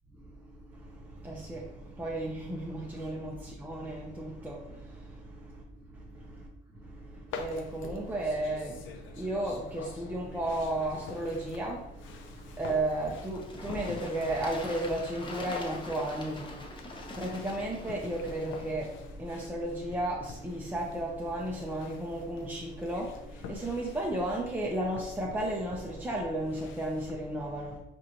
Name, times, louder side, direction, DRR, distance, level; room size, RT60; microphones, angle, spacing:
voice 1, 0.2-5.6 5.9-6.5 6.7-27.8, right 1 dB, 10° right, 0.6 m, -34 dB
sound 1, 7.3-27.1, left 4 dB, 80° left, 0.5 m, -48 dB
Bird / Water, 12.0-18.7, left 2 dB, 25° left, 0.7 m, -45 dB
4.8 x 2.6 x 2.9 m
cardioid pair, 90°, 20 cm